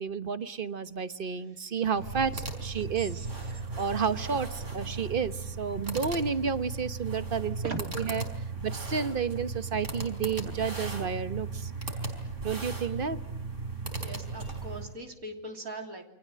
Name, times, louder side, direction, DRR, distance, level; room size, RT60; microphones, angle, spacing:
voice 1, 0.0-3.3 3.8-8.2 8.6-11.7 12.4-13.2, right 6 dB, 40° right, 13 dB, 1.3 m, -31 dB
sound 1, 1.9-14.9, right 3 dB, 55° right, 4.9 m, -36 dB
voice 2, 2.8-3.5 7.6-7.8 14.0-16.1, right 2 dB, 80° right, 4 dB, 3.6 m, -41 dB
29.0 x 25.0 x 7.7 m, 0.80 s
omnidirectional pair, 1.5 m